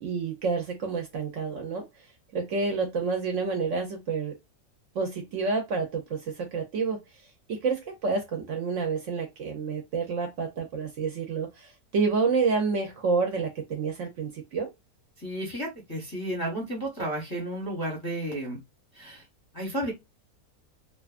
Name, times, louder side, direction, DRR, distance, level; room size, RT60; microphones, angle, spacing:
voice 1, 0.0-1.8 2.3-4.3 5.0-7.0 7.5-14.7, right 4 dB, 65° right, 0.8 m, -29 dB
voice 2, 15.2-18.6 18.9-19.2 19.5-19.9, right 1 dB, 20° left, 0.6 m, -32 dB
2.5 x 2.3 x 2.4 m
omnidirectional pair, 1.6 m